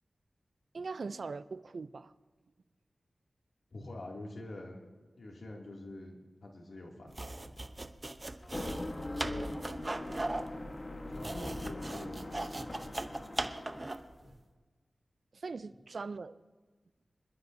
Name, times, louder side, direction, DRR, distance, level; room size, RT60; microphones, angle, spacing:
voice 1, 0.7-2.1 9.2-9.8 15.3-16.4, right 4 dB, 70° right, 14 dB, 0.5 m, -41 dB
voice 2, 3.7-4.9 5.2-7.6 9.2-9.6 11.1-13.0 14.2-14.4, left 1 dB, 75° left, -1 dB, 2.6 m, -46 dB
sound 1, 7.1-14.1, right 2 dB, 35° right, 0.8 m, -39 dB
sound 2, 8.4-14.1, left 1 dB, 40° left, 1.3 m, -41 dB
26.0 x 12.0 x 2.7 m, 1.3 s
cardioid pair, 50°, 0 cm